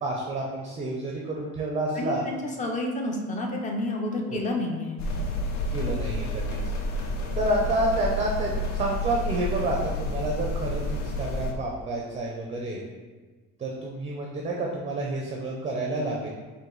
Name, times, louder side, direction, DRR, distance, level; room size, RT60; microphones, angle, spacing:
voice 1, 0.0-2.2 4.3-4.4 5.7-6.6 7.3-12.9 13.6-16.3, right 1 dB, 20° right, -2 dB, 0.5 m, -29 dB
voice 2, 2.0-5.0, left 1 dB, 25° left, 2 dB, 0.5 m, -30 dB
sound 1, 5.0-11.5, left 1 dB, 65° left, 0.6 m, -30 dB
4.7 x 2.6 x 3.8 m, 1.3 s
cardioid pair, 155°, 29 cm